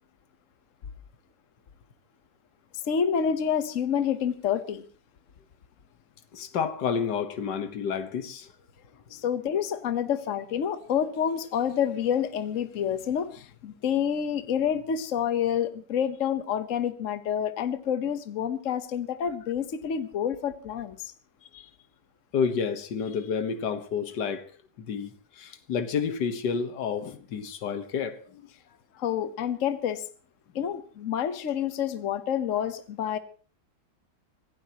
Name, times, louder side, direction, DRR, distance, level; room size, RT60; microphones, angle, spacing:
voice 1, 2.8-4.8 9.1-21.1 29.0-30.0 30.5-33.2, left 8 dB, 55° left, 1.3 m, -28 dB
voice 2, 6.3-8.5 21.5-21.7 22.3-24.5 24.8-25.1 25.4-28.4, left 6 dB, 80° left, 1.9 m, -30 dB
26.0 x 16.5 x 2.9 m
omnidirectional pair, 1.8 m